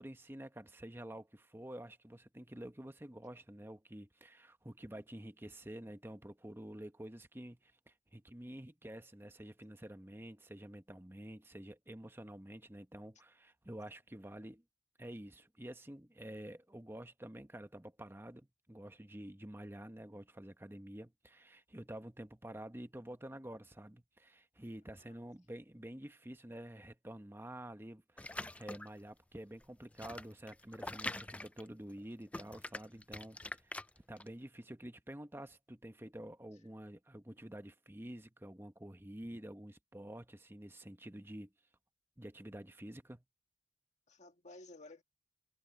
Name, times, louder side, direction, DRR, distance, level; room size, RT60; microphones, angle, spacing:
voice 1, 0.0-14.6 15.0-41.5 42.2-43.2, right 1 dB, 15° right, 1.0 m, -49 dB
voice 2, 24.9-25.2 44.1-45.0, left 2 dB, 40° left, 1.9 m, -55 dB
sound 1, 28.2-29.0 29.6-32.0 32.3-34.3, left 2 dB, 10° left, 0.4 m, -44 dB
head